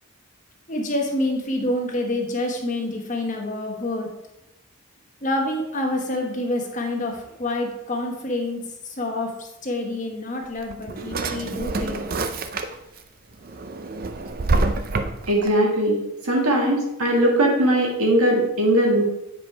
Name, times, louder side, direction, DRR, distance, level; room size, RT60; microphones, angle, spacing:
voice 1, 0.7-4.1 5.2-12.0, left 1 dB, 35° left, 1 dB, 1.2 m, -27 dB
Drawer open or close, 10.4-13.0 13.4-15.5, right 3 dB, 40° right, 0.4 m, -26 dB
voice 2, 15.3-19.0, right 1 dB, 85° right, 0 dB, 1.9 m, -20 dB
7.8 x 5.0 x 4.5 m, 0.87 s
head